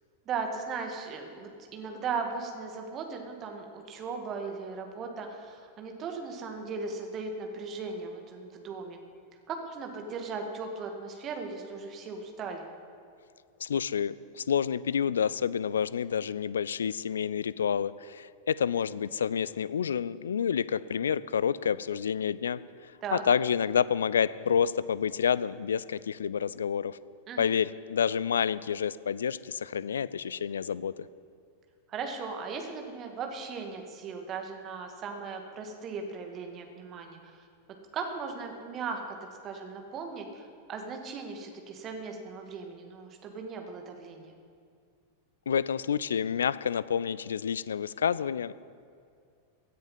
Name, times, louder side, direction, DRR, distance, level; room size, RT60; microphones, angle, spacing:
voice 1, 0.3-9.0 9.5-12.6 23.0-23.2 27.3-27.5 31.9-37.4 37.9-39.2 39.4-44.4, right 4 dB, 30° right, 3 dB, 1.9 m, -37 dB
voice 2, 13.6-27.0 27.4-31.1 45.5-48.5, left 7 dB, 65° left, 18 dB, 0.4 m, -29 dB
16.5 x 10.0 x 5.5 m, 2.2 s
figure-of-eight pair, 90°, 0 cm